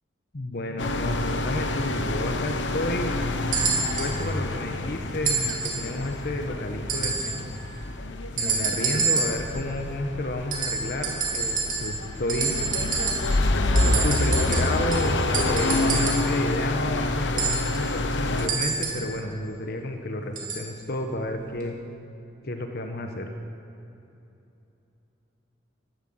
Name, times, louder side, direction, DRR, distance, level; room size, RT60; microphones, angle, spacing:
voice 1, 0.3-3.1 4.0-7.5 8.4-12.5 13.9-15.2 15.4-21.8 22.4-23.3, left 1 dB, 60° left, 4 dB, 1.1 m, -31 dB
sound 1, 0.8-18.5, left 2 dB, 75° left, 0.9 m, -27 dB
sound 2, 3.5-4.2 5.3-5.9 6.9-7.4 8.4-9.5 10.5-12.0 12.3-13.4 13.8-16.3 17.4-19.1 20.4-20.7 21.6-21.7, right 5 dB, 45° right, 2.9 m, -28 dB
12.5 x 12.5 x 7.8 m, 2.9 s
head